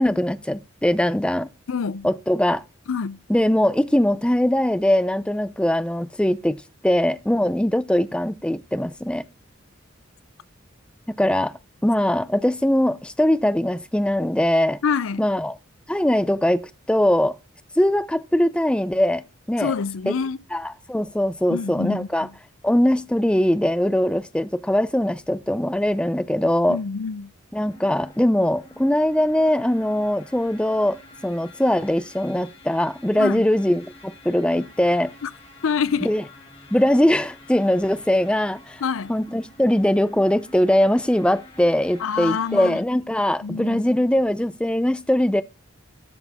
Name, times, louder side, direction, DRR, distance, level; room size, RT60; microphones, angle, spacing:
voice 1, 0.0-1.5 2.0-2.6 3.3-9.2 11.2-11.5 11.8-14.8 15.2-15.5 15.9-17.3 17.8-19.2 19.5-19.7 20.1-20.2 20.5-22.3 22.6-26.8 27.5-35.1 36.0-36.2 36.7-38.8 39.1-45.4, left 1 dB, 5° left, 0.4 m, -21 dB
voice 2, 1.7-2.1 2.9-3.2 14.8-15.3 19.6-20.4 21.5-22.3 26.7-27.3 33.2-33.5 35.2-35.3 35.6-36.1 38.8-39.1 42.0-42.8 43.4-43.8, left 6 dB, 75° left, 0.5 m, -26 dB
sound 1, 27.6-42.7, left 2 dB, 30° left, 1.9 m, -48 dB
13.0 x 4.8 x 3.5 m
head